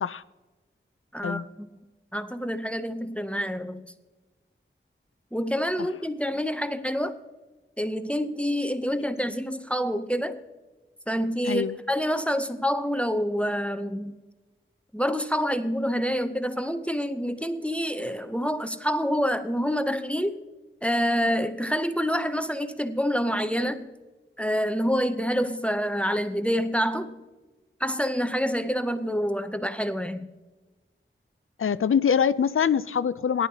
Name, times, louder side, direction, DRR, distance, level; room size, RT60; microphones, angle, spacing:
voice 1, 1.1-1.7 2.1-3.8 5.3-7.2 7.8-10.4 11.1-14.1 14.9-20.4 20.8-23.9 24.4-27.3 27.8-30.3, equal, 5° left, 9 dB, 0.7 m, -27 dB
voice 2, 11.5-11.8 31.6-33.5, left 7 dB, 90° left, 16 dB, 0.4 m, -24 dB
17.5 x 10.5 x 2.8 m, 1.2 s
wide cardioid pair, 60°, 21 cm